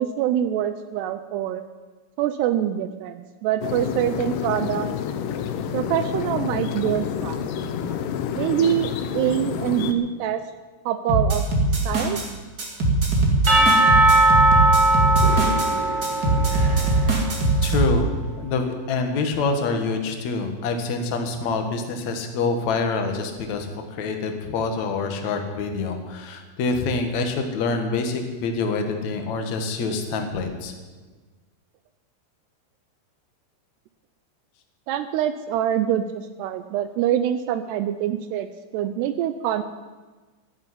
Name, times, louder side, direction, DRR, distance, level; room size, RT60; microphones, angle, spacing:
voice 1, 0.0-1.6 2.2-4.9 5.7-7.4 8.4-10.4 10.9-11.4 11.9-12.2 34.9-36.0 36.4-38.5 38.7-39.6, right 11 dB, 80° right, 11 dB, 2.5 m, -24 dB
sound 1, 3.6-9.9, left 8 dB, 80° left, 1.9 m, -28 dB
sound 2, 11.1-12.3 12.6-15.7 16.0-17.9, right 2 dB, 30° right, 1.9 m, -21 dB
Percussion / Church bell, 13.5-17.6, right 2 dB, 50° right, 1.1 m, -19 dB
voice 2, 17.6-30.7, left 4 dB, 55° left, 5 dB, 2.3 m, -26 dB
12.5 x 10.5 x 9.8 m, 1.3 s
omnidirectional pair, 5.2 m